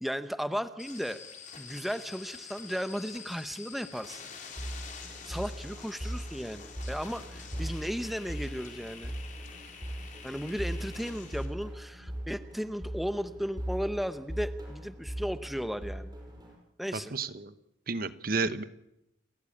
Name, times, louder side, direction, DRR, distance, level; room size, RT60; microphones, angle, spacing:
voice 1, 0.0-1.2 1.6-4.2 5.2-9.1 10.2-16.2 16.8-17.1, equal, ahead, 11 dB, 0.8 m, -35 dB
sound 1, 0.8-11.4, left 6 dB, 40° left, 3.8 m, -47 dB
sound 2, 4.6-16.5, right 1 dB, 20° right, 5.6 m, -40 dB
voice 2, 17.1-17.5 17.9-18.6, right 4 dB, 50° right, 14 dB, 1.0 m, -31 dB
29.5 x 14.0 x 8.6 m, 0.85 s
head